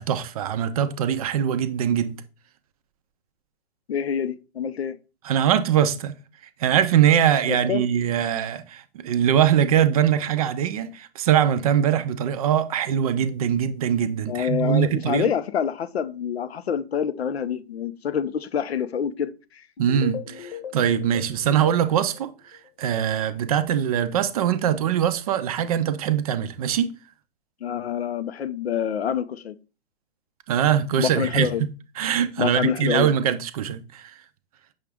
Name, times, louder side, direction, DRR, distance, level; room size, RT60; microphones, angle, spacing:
voice 1, 0.0-2.2 5.2-6.2 6.6-15.3 19.8-22.3 22.8-26.9 30.5-31.7 32.0-34.1, right 9 dB, 40° right, 0.4 m, -22 dB
voice 2, 3.9-5.0 7.5-7.8 14.3-19.6 27.6-29.6 31.0-31.6 32.4-33.1, left 8 dB, 80° left, 0.5 m, -26 dB
sound 1, 19.8-22.7, left 8 dB, 65° left, 0.9 m, -39 dB
6.1 x 2.4 x 3.4 m
hypercardioid pair, 125°, 31 cm